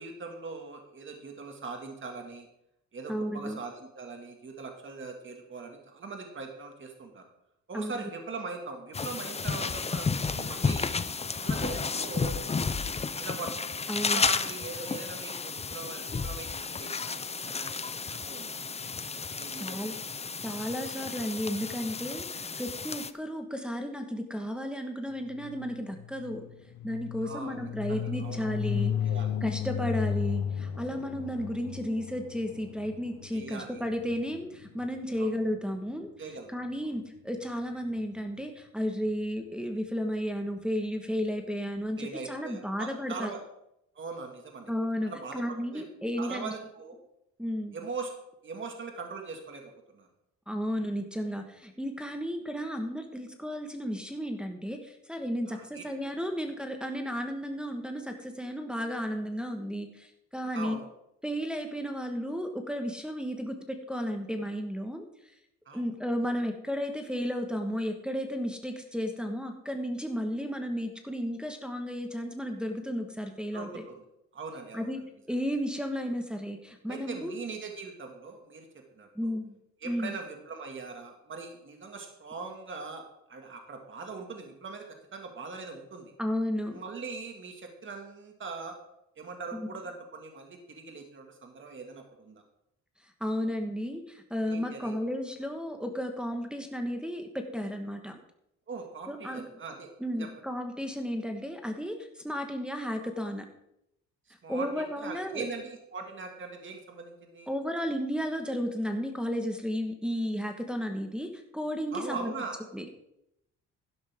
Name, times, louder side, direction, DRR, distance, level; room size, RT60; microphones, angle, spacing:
voice 1, 0.0-2.5 2.9-7.3 7.7-10.9 11.3-12.4 13.2-17.9 18.2-18.6 19.4-20.1 27.2-27.6 27.9-28.4 29.0-29.3 33.3-33.8 35.2-35.3 36.2-36.5 36.8-37.0 42.0-43.4 44.0-44.7 45.1-45.8 46.2-47.0 47.7-48.1 48.4-50.1 55.5-56.1 60.5-60.9 65.7-65.8 73.5-74.0 74.3-74.9 76.9-79.3 79.8-83.0 83.3-84.9 85.1-86.1 86.7-88.7 89.2-92.4 94.5-94.9 98.7-99.9 100.2-100.3 104.4-107.5 111.9-112.6, right 4 dB, 40° right, 3 dB, 2.1 m, -41 dB
voice 2, 3.1-3.6 7.7-8.0 13.9-14.2 19.6-20.0 20.4-26.4 26.8-28.9 29.4-36.1 36.5-43.3 44.7-46.5 47.4-47.7 50.5-60.8 61.2-65.0 65.7-73.8 74.7-75.0 75.3-77.3 79.1-79.6 79.8-80.2 86.2-86.8 89.5-89.7 93.2-98.2 99.1-99.4 100.0-103.4 104.5-105.5 107.5-112.3 112.7-112.8, equal, 5° right, 3 dB, 1.4 m, -33 dB
sound 1, 8.9-23.1, left 5 dB, 20° left, 0.6 m, -32 dB
sound 2, 25.3-35.3, left 8 dB, 70° left, 1.0 m, -34 dB
12.0 x 11.0 x 3.6 m, 0.81 s
cardioid pair, 90°, 30 cm